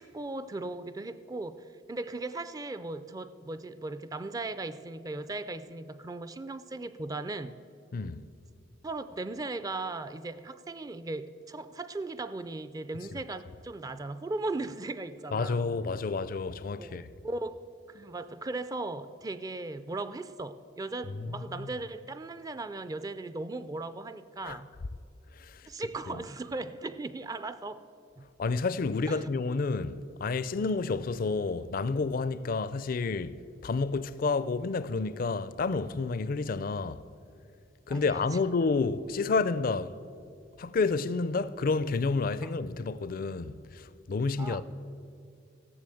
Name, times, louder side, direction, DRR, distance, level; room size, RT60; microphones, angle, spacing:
voice 1, 0.0-7.6 8.8-15.7 16.8-24.7 25.7-27.8 28.2-28.3 29.1-29.2 37.9-38.4 42.4-42.5 44.4-44.6, right 2 dB, 20° right, 0.4 m, -38 dB
voice 2, 7.9-8.3 13.1-13.2 15.3-17.1 21.2-21.7 24.4-24.6 25.3-25.7 26.1-26.2 28.4-37.0 37.9-40.0 40.6-44.6, left 4 dB, 45° left, 0.4 m, -30 dB
14.0 x 7.3 x 7.7 m
head